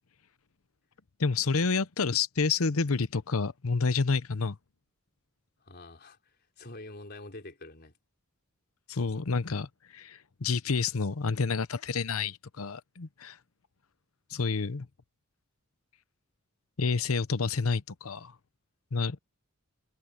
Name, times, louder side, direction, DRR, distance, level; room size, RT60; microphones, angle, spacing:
voice 1, 1.2-4.6 8.9-13.4 14.3-14.9 16.8-18.3 18.9-19.2, left 4 dB, 80° left, 0.8 m, -29 dB
voice 2, 5.6-6.2 6.6-7.9, left 2 dB, 50° left, 4.0 m, -45 dB
head